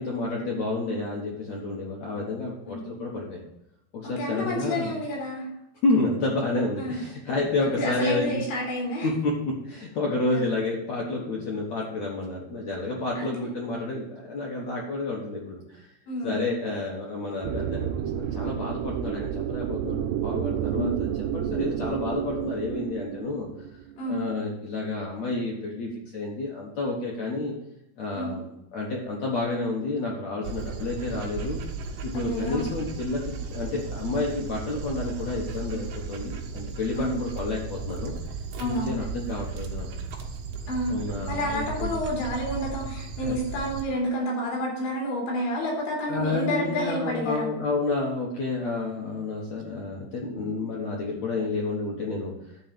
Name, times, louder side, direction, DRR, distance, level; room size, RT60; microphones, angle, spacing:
voice 1, 0.0-3.4 3.9-4.9 5.8-8.4 9.0-15.8 16.2-23.5 24.1-27.5 28.0-31.6 32.0-38.1 38.6-40.0 40.9-41.9 43.2-43.4 45.6-45.8 46.1-52.3, left 2 dB, 65° left, -3 dB, 1.8 m, -30 dB
voice 2, 4.0-5.5 6.8-7.0 7.7-9.1 10.3-10.5 13.2-13.5 16.1-16.5 20.7-21.0 24.0-24.2 28.1-28.3 32.1-32.7 37.0-37.2 38.6-39.0 40.7-41.0 41.3-47.5, left 1 dB, 85° left, -3 dB, 5.4 m, -30 dB
sound 1, 17.4-24.1, right 10 dB, 85° right, 2.6 m, -30 dB
Dog, 30.4-43.8, right 4 dB, 65° right, 1.9 m, -35 dB
11.0 x 4.1 x 7.5 m, 0.85 s
omnidirectional pair, 5.0 m